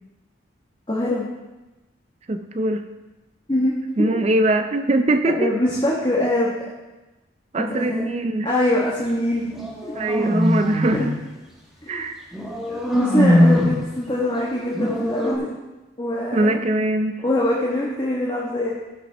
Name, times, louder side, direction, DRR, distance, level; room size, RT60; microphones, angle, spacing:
voice 1, 0.9-1.2 3.5-4.2 5.3-6.5 7.6-8.1 8.4-9.4 9.8-9.9 10.9-11.1 11.8-12.0 12.7-15.5 16.0-16.6 17.2-18.7, left 1 dB, 25° left, -5 dB, 1.3 m, -23 dB
voice 2, 2.3-2.8 4.0-5.5 7.5-8.6 9.9-11.1 11.9-12.2 16.3-17.1, right 1 dB, 35° right, 8 dB, 0.4 m, -21 dB
sound 1, 9.5-11.1 12.3-13.8 14.7-15.4, equal, ahead, 1.3 m, -20 dB
15.0 x 6.0 x 3.4 m, 1.1 s
head